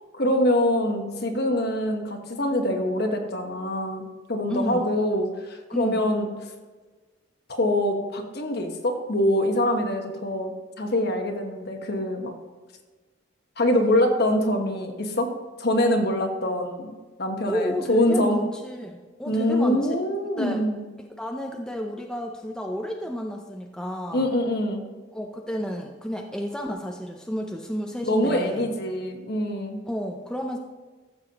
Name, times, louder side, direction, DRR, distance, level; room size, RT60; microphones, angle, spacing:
voice 1, 0.1-4.0 4.3-6.3 7.5-12.3 13.6-15.3 15.6-18.4 19.2-20.8 24.1-24.8 28.0-29.8, left 1 dB, 55° left, 4 dB, 1.2 m, -24 dB
voice 2, 4.5-4.9 5.7-6.0 17.5-20.0 20.4-20.6 21.2-24.3 25.1-28.7 29.9-30.6, equal, 5° left, 2 dB, 0.5 m, -31 dB
14.5 x 7.0 x 2.9 m, 1.3 s
head